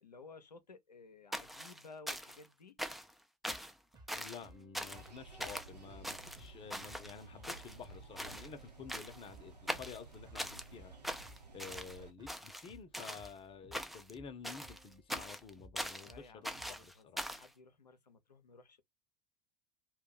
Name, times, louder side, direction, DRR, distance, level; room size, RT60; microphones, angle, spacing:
voice 1, 0.0-2.8 16.0-18.8, left 4 dB, 90° left, 0.6 m, -56 dB
sound 1, 1.3-2.5 2.8-3.1 3.4-3.7 4.1-4.4 4.7-5.1 5.4-5.7 6.0-7.1 7.4-8.5 8.9-9.3 9.7-10.7 11.0-12.0 12.3-13.3 13.7-14.1 14.4-16.1 16.4-17.5, equal, ahead, 0.4 m, -42 dB
sound 2, 3.5-16.9, right 1 dB, 20° right, 1.0 m, -60 dB
voice 2, 4.1-10.9 11.5-17.2, left 6 dB, 25° left, 0.7 m, -51 dB
sound 3, 4.9-12.1, right 3 dB, 90° right, 0.9 m, -55 dB
2.6 x 2.3 x 3.7 m
figure-of-eight pair, 80°, 20 cm